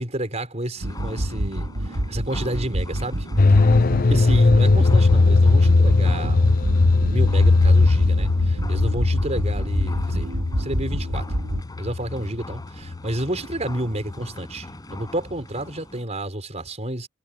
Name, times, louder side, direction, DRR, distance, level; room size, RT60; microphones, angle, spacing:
voice 1, 0.0-3.3 4.1-10.3 10.6-11.3 11.8-17.1, right 1 dB, 30° right, 5.5 m, -30 dB
sound 1, 0.8-16.1, left 1 dB, 20° left, 5.6 m, -42 dB
sound 2, 0.8-11.6, right 1 dB, 70° right, 1.9 m, -28 dB
sound 3, 3.4-13.2 13.5-13.6, left 3 dB, 45° left, 0.7 m, -18 dB
head